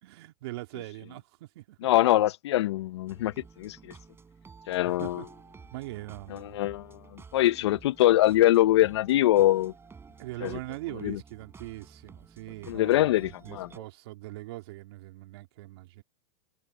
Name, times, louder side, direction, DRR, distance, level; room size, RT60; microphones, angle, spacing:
voice 1, 0.0-1.8 4.8-5.3 5.7-6.6 10.2-16.0, right 18 dB, 65° right, 3.0 m, -41 dB
voice 2, 1.8-3.3 3.6-3.8 4.7-5.2 6.3-9.7 10.4-10.6 11.0-11.2 12.7-13.7, left 14 dB, 70° left, 0.7 m, -23 dB
sound 1, 3.1-13.8, right 5 dB, 15° right, 5.5 m, -52 dB
hypercardioid pair, 110°, 15 cm